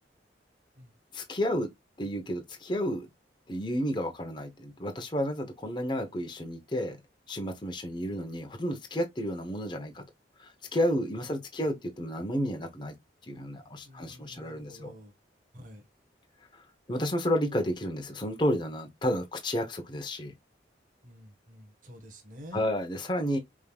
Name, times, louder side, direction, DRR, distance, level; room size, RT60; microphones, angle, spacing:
voice 1, 1.1-1.7 2.0-3.1 3.5-7.0 7.3-10.0 10.4-12.9 13.3-14.9 16.5-20.3 22.5-23.4, equal, 25° left, 0.9 m, -31 dB
voice 2, 13.8-15.1 15.5-15.8 21.0-22.7, equal, 45° right, 1.3 m, -49 dB
5.3 x 3.7 x 2.3 m
head